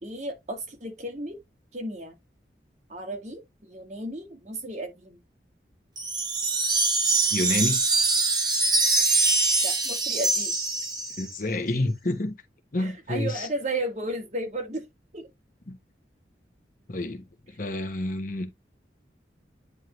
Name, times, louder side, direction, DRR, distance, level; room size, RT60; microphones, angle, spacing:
voice 1, 0.0-1.4 1.7-2.2 2.9-5.2 9.6-10.5 12.8-14.8 15.1-15.3, right 1 dB, 40° right, 1.9 m, -34 dB
Wind chime, 6.0-11.3, right 3 dB, 25° right, 1.5 m, -24 dB
voice 2, 7.3-7.8 11.2-12.4 12.7-13.5 15.7-15.8 16.9-17.2 17.6-18.5, left 2 dB, 50° left, 1.1 m, -28 dB
9.4 x 3.6 x 3.1 m
head